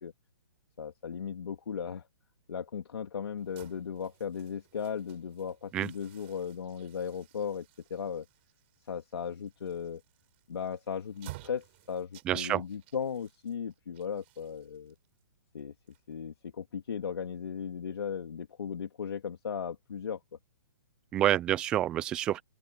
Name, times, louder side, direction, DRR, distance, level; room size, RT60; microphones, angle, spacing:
voice 1, 0.8-2.1 2.5-8.2 8.9-10.0 10.5-14.9 15.5-15.7 16.1-20.2, left 7 dB, 85° left, 3.0 m, -37 dB
sound 1, 3.4-16.5, right 21 dB, 30° right, 7.0 m, -55 dB
voice 2, 12.3-12.6 21.1-22.4, right 12 dB, 5° right, 0.3 m, -28 dB
open air
hypercardioid pair, 175°, 13 cm